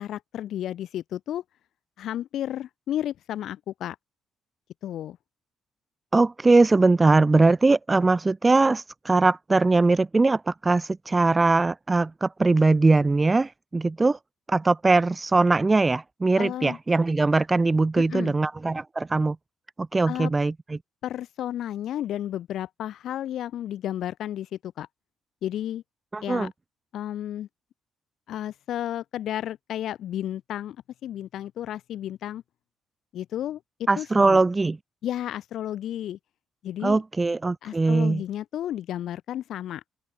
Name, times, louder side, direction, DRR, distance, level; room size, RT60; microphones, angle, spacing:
voice 1, 0.0-1.4 2.0-4.0 4.8-5.2 16.4-16.8 18.0-18.3 20.1-20.3 21.0-24.9 25.4-25.8 26.2-26.5 26.9-27.5 28.3-30.8 31.0-32.4 33.1-33.6 34.0-34.4 35.0-36.2 36.6-37.0 37.6-39.8, left 11 dB, 65° left, 0.4 m, -32 dB
voice 2, 6.1-14.2 14.5-19.4 19.8-20.8 26.1-26.5 33.9-34.8 36.8-38.2, right 3 dB, 25° right, 0.5 m, -21 dB
open air
hypercardioid pair, 50°, 0 cm